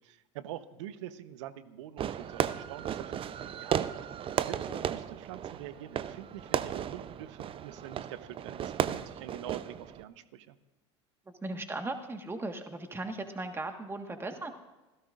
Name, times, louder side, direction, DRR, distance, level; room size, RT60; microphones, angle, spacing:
voice 1, 0.0-10.6, right 11 dB, 70° right, 13 dB, 1.0 m, -45 dB
Fireworks, 2.0-10.0, right 9 dB, 35° right, 0.6 m, -35 dB
voice 2, 11.3-14.5, right 2 dB, 15° right, 6 dB, 1.5 m, -38 dB
26.5 x 16.5 x 2.5 m, 1.1 s
hypercardioid pair, 80°, 16 cm